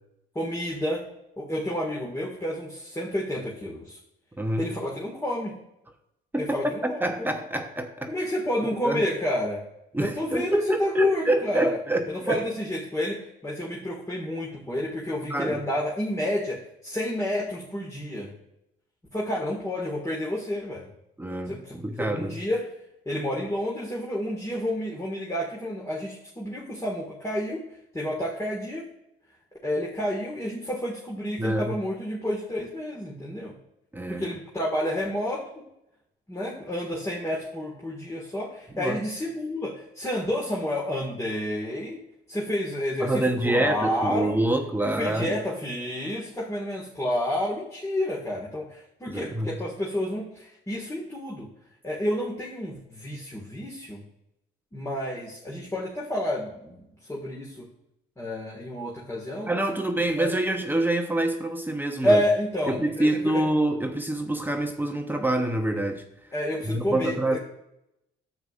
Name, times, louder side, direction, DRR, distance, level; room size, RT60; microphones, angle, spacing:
voice 1, 0.4-1.0 1.4-4.0 4.6-5.6 6.4-7.0 8.1-9.6 10.0-11.8 12.1-18.3 19.1-20.9 21.5-22.7 23.1-27.6 27.9-28.8 29.6-33.6 34.1-35.6 36.3-42.0 42.3-44.4 44.8-51.5 51.8-54.0 54.7-57.7 58.2-59.5 60.2-60.3 62.0-63.4 66.3-67.4, left 1 dB, 15° left, -3 dB, 1.8 m, -30 dB
voice 2, 4.4-4.7 6.3-6.6 6.8-8.1 8.8-9.0 9.9-12.4 15.3-15.6 21.2-22.4 31.4-31.8 33.9-34.3 38.7-39.0 43.0-45.4 49.1-49.6 59.5-62.2 62.7-66.0 66.6-67.4, right 1 dB, 10° right, 4 dB, 0.8 m, -26 dB
10.5 x 8.1 x 2.5 m, 0.85 s
cardioid pair, 90°, 20 cm